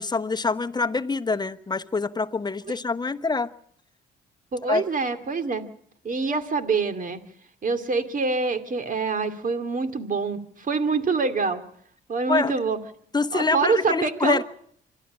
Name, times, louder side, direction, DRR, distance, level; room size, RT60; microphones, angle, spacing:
voice 1, 0.0-3.5 4.7-4.8 12.3-12.5 13.1-14.4, left 3 dB, 20° left, 1.1 m, -25 dB
voice 2, 4.5-5.6 6.0-7.2 7.6-11.6 12.1-12.8 13.3-14.4, right 4 dB, 40° right, 2.5 m, -25 dB
26.0 x 12.5 x 8.7 m
cardioid pair, 90°, 20 cm